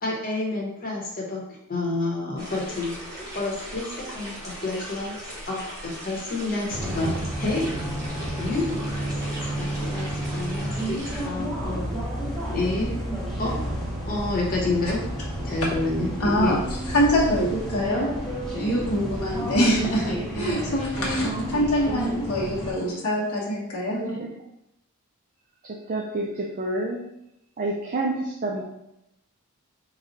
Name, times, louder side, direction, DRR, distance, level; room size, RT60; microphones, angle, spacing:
voice 1, 0.0-1.4 1.7-3.0 3.3-5.1 5.5-7.8 8.4-12.0 12.5-12.9 13.4-13.5 14.0-15.0 15.4-16.1 16.4-16.6, left 2 dB, 40° left, -2 dB, 1.1 m, -29 dB
sound 1, 2.4-11.2, equal, 15° right, 1.2 m, -38 dB
sound 2, 6.7-22.7, right 1 dB, ahead, 0.9 m, -31 dB
voice 2, 16.2-16.6 16.9-18.1 18.6-24.1, equal, 80° left, -5 dB, 1.1 m, -24 dB
voice 3, 23.9-24.3 25.6-27.0 27.6-28.6, right 2 dB, 40° right, -2 dB, 0.5 m, -29 dB
4.0 x 2.4 x 4.1 m, 0.83 s
head